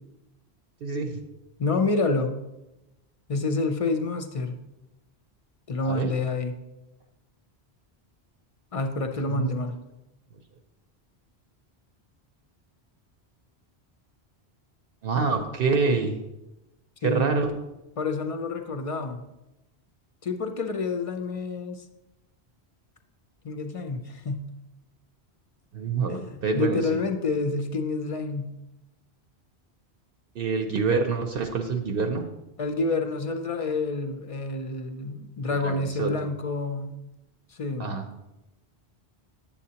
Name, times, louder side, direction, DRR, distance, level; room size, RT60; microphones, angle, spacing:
voice 1, 0.8-1.1 5.8-6.1 9.3-9.5 15.0-16.2 17.0-17.5 25.7-27.0 30.4-32.3 35.5-36.1 37.8-38.0, right 4 dB, 65° right, 5 dB, 0.8 m, -26 dB
voice 2, 1.6-2.3 3.3-4.6 5.7-6.6 8.7-9.7 17.0-17.4 18.0-19.2 20.2-21.9 23.4-24.5 26.1-28.6 32.6-37.0 37.5-38.0, left 3 dB, 45° left, 6 dB, 0.5 m, -28 dB
8.5 x 7.1 x 2.8 m, 0.95 s
omnidirectional pair, 1.1 m